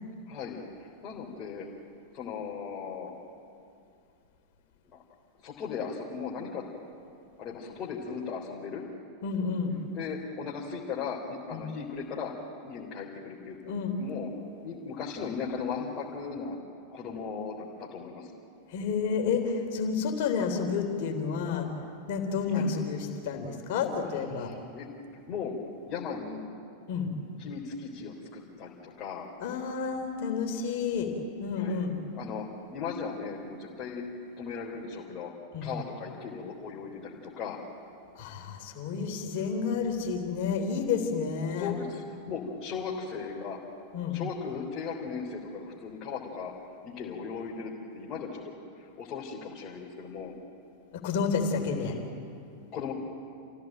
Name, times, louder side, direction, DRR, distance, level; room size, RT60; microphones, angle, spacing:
voice 1, 0.3-0.6 1.0-1.7 2.1-3.1 5.4-6.6 7.4-8.8 9.9-12.3 12.6-13.6 14.0-14.3 14.6-16.6 16.9-18.3 22.5-22.7 24.4-24.9 25.3-25.5 25.8-26.5 27.4-29.3 31.6-31.9 32.1-34.0 34.4-35.3 35.6-37.6 41.4-43.6 44.1-46.5 46.8-50.3 51.8-52.0 52.7-52.9, left 5 dB, 35° left, -4 dB, 3.8 m, -37 dB
voice 2, 9.2-9.7 11.5-11.7 13.7-13.9 18.7-21.7 22.1-24.5 26.9-27.1 29.4-31.1 31.4-31.9 35.5-35.7 38.2-41.7 43.9-44.2 50.9-52.0, left 5 dB, 50° left, 4 dB, 3.4 m, -30 dB
28.0 x 16.5 x 9.1 m, 2.5 s
figure-of-eight pair, 90°, 0 cm